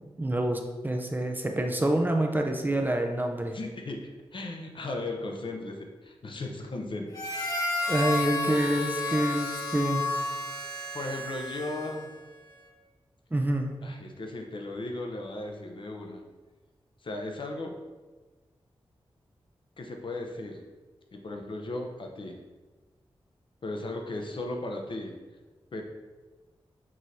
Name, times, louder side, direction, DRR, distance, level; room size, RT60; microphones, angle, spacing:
voice 1, 0.0-3.6 7.9-10.0 13.3-13.7, right 1 dB, 20° right, 3 dB, 0.5 m, -27 dB
voice 2, 3.5-7.6 10.9-12.1 13.8-16.2 17.0-17.7 19.8-20.6 21.1-22.4 23.6-25.1 25.7-25.8, left 2 dB, 55° left, 2 dB, 0.7 m, -36 dB
Harmonica, 7.1-12.1, left 2 dB, 40° left, 1.4 m, -32 dB
6.1 x 3.1 x 2.7 m, 1.3 s
cardioid pair, 60°, 10 cm